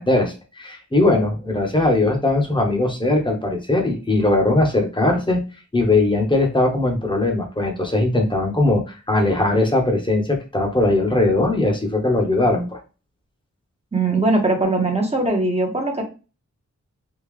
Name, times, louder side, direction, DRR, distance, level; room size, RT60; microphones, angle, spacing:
voice 1, 0.0-5.4 5.7-12.8, left 2 dB, 15° left, 2 dB, 0.9 m, -20 dB
voice 2, 13.9-16.0, right 2 dB, 20° right, 1 dB, 0.8 m, -20 dB
3.6 x 2.3 x 3.2 m, 0.32 s
wide cardioid pair, 110°, 30 cm